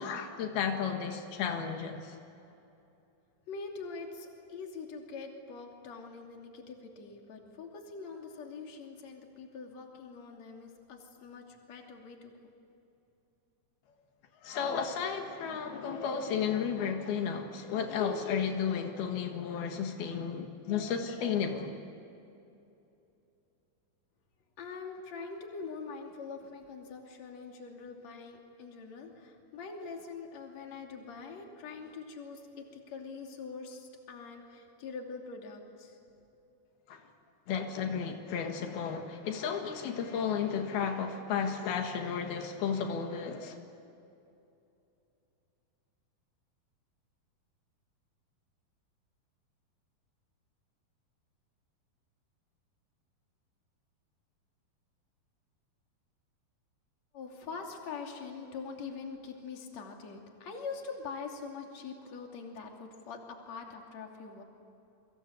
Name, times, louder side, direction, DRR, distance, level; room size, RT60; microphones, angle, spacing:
voice 1, 0.0-2.2 14.4-21.8 36.9-37.0 37.5-43.6, left 7 dB, 85° left, 3.6 m, -33 dB
voice 2, 3.5-12.3 24.6-36.0 57.1-64.4, left 4 dB, 50° left, 3.8 m, -44 dB
29.0 x 24.0 x 8.2 m
omnidirectional pair, 4.3 m